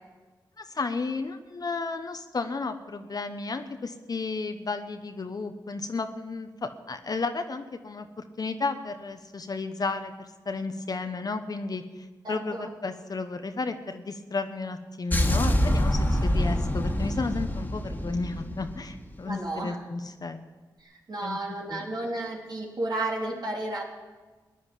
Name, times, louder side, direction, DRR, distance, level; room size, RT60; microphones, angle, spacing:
voice 1, 0.6-8.1 8.4-10.1 10.4-20.4 21.2-21.4 21.7-21.9, left 3 dB, 50° left, 7 dB, 1.0 m, -33 dB
voice 2, 12.2-12.7 19.3-19.8 20.8-23.8, right 2 dB, 60° right, -3 dB, 3.1 m, -32 dB
sound 1, 15.1-19.2, equal, 20° left, 1.9 m, -26 dB
15.0 x 10.5 x 7.6 m, 1.3 s
cardioid pair, 50°, 8 cm